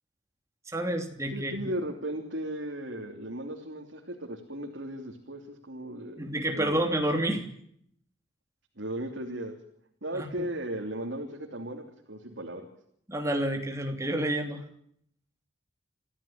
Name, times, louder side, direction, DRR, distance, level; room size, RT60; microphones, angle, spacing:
voice 1, 0.7-1.6 6.2-7.4 10.1-10.4 13.1-14.6, right 1 dB, 15° right, 4 dB, 3.1 m, -29 dB
voice 2, 1.3-6.8 8.8-9.6 10.0-12.6, right 1 dB, 75° right, 1 dB, 3.3 m, -36 dB
25.5 x 15.5 x 8.9 m, 0.68 s
head